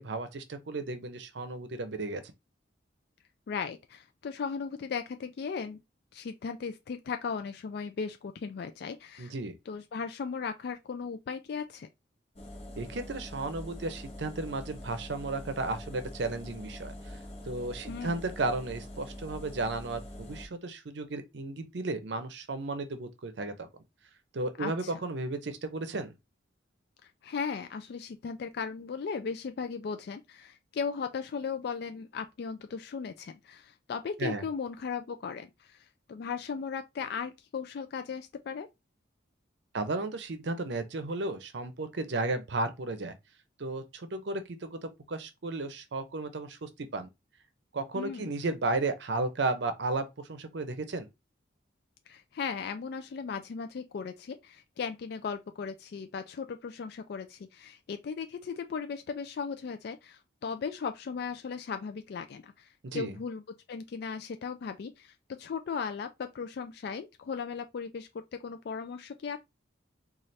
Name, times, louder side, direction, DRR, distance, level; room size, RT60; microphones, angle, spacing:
voice 1, 0.0-2.2 9.2-9.5 12.8-17.2 17.4-23.7 24.3-26.1 34.2-34.4 39.7-43.2 43.6-47.1 47.7-51.1 62.8-63.2, right 2 dB, 65° right, 0.6 m, -34 dB
voice 2, 3.5-5.8 6.1-9.3 9.7-11.9 17.9-18.1 24.6-24.9 27.2-38.7 47.9-48.2 52.1-63.4 63.7-69.4, left 5 dB, 55° left, 0.3 m, -37 dB
sound 1, 12.4-20.5, left 1 dB, 35° left, 1.0 m, -44 dB
4.1 x 2.4 x 3.1 m
head